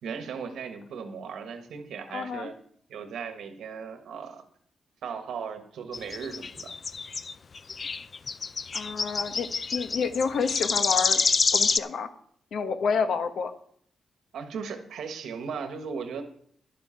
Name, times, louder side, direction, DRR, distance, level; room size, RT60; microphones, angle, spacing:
voice 1, 0.0-2.6 2.9-4.4 5.0-6.7 14.3-16.2, right 6 dB, 85° right, 7 dB, 1.4 m, -37 dB
voice 2, 2.1-2.5 8.7-11.2 11.5-12.1 12.5-13.5, left 5 dB, 75° left, 9 dB, 1.0 m, -29 dB
sound 1, 5.9-11.8, left 4 dB, 40° left, 0.4 m, -27 dB
10.5 x 7.8 x 5.8 m, 0.64 s
cardioid pair, 100°, 0 cm